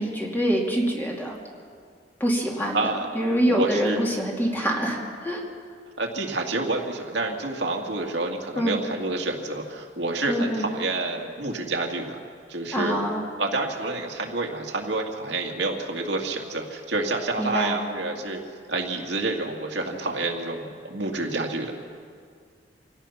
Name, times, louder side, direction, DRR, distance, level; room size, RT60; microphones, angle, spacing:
voice 1, 0.0-1.4 2.2-5.4 8.6-8.8 10.3-10.7 12.7-13.2 17.4-17.8, equal, 10° left, -1 dB, 2.6 m, -25 dB
voice 2, 2.7-3.1 3.5-4.0 6.0-12.2 12.5-13.0 13.4-18.4 18.7-21.7, right 2 dB, 75° right, 1 dB, 2.3 m, -28 dB
26.5 x 17.5 x 5.8 m, 2.1 s
head